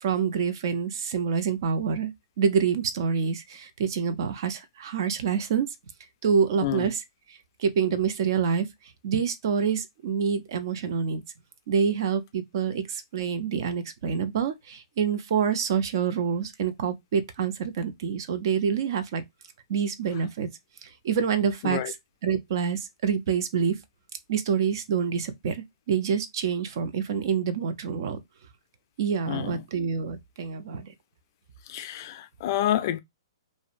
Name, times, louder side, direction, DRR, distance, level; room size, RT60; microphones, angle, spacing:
voice 1, 0.0-2.1 2.4-5.7 6.2-7.0 7.6-8.7 9.0-11.2 11.7-19.2 19.7-20.5 21.0-21.9 22.2-23.8 24.3-28.2 29.0-30.9, right 6 dB, 55° right, 0.5 m, -27 dB
voice 2, 29.3-29.6 31.7-33.0, left 12 dB, 45° left, 0.4 m, -28 dB
2.6 x 2.1 x 2.4 m
hypercardioid pair, 140°, 3 cm